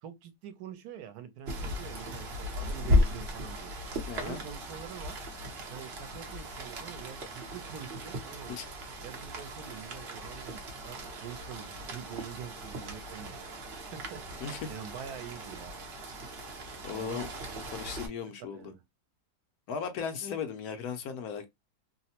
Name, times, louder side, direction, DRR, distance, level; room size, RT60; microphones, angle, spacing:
voice 1, 0.0-3.7 4.2-5.2 5.7-8.6 9.0-13.4 13.9-14.2 14.7-15.7 16.9-17.3 18.5-18.8, right 8 dB, 85° right, 1.2 m, -45 dB
Rain, 1.5-18.1, left 1 dB, 50° right, 0.9 m, -35 dB
voice 2, 4.1-4.4 8.5-8.7 14.4-14.7 16.8-17.3 17.7-18.7 19.7-21.5, left 6 dB, 75° left, 1.2 m, -37 dB
3.1 x 2.0 x 2.8 m
omnidirectional pair, 1.6 m